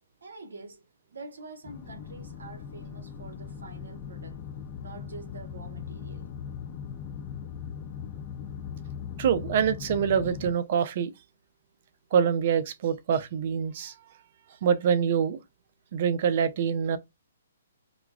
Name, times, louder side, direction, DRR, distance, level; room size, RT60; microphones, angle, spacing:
voice 1, 0.2-0.8 1.1-4.4 4.8-6.3, right 3 dB, 85° right, 1.3 m, -46 dB
sound 1, 1.6-10.5, left 7 dB, 35° left, 0.4 m, -39 dB
voice 2, 9.2-11.1 12.1-13.9 14.6-15.4 15.9-17.0, right 7 dB, 50° right, 0.6 m, -25 dB
4.9 x 2.3 x 2.3 m
hypercardioid pair, 145°, 0 cm